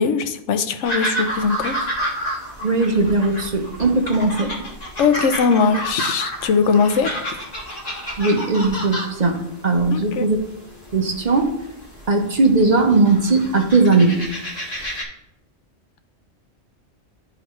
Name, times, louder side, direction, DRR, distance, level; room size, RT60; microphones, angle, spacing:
voice 1, 0.0-1.9 5.0-7.3 9.9-10.3, left 5 dB, 90° left, 10 dB, 1.0 m, -20 dB
sound 1, 0.8-15.0, right 1 dB, 35° left, 1.5 m, -30 dB
voice 2, 2.6-4.5 8.2-10.4 10.9-11.5 12.1-14.2, right 3 dB, 45° right, 4 dB, 0.8 m, -18 dB
11.5 x 3.9 x 3.1 m, 0.83 s
omnidirectional pair, 1.2 m